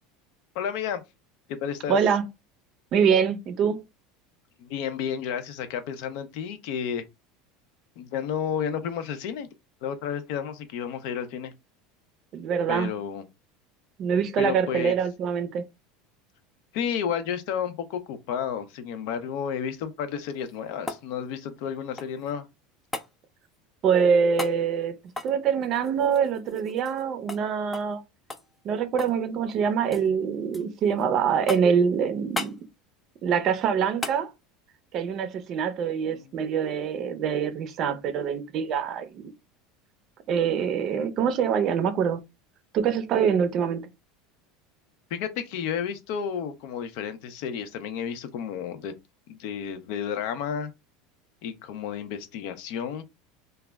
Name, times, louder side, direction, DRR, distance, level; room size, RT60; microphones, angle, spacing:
voice 1, 0.5-1.0 1.5-2.0 4.6-7.0 8.0-9.5 9.8-11.5 12.7-13.2 14.4-14.9 16.7-22.5 36.1-36.3 45.1-48.9 49.3-50.7 51.4-53.0, left 8 dB, 65° left, 0.5 m, -31 dB
voice 2, 1.9-2.2 2.9-3.8 12.3-12.9 14.0-15.7 23.8-25.0 25.2-28.0 28.6-32.5 33.2-34.3 34.9-39.3 40.3-42.2 42.7-43.9, right 7 dB, 45° right, 0.5 m, -24 dB
sound 1, 20.2-22.3 22.9-23.1 24.4-24.6 25.1-27.0 27.3-27.4 27.7-28.0 28.3-29.2 29.5-30.1 30.5-31.0 31.5-31.8 32.3-32.6 34.0-34.2 36.6-36.7, left 2 dB, 15° left, 0.3 m, -37 dB
2.2 x 2.0 x 3.3 m
supercardioid pair, 130°, 0 cm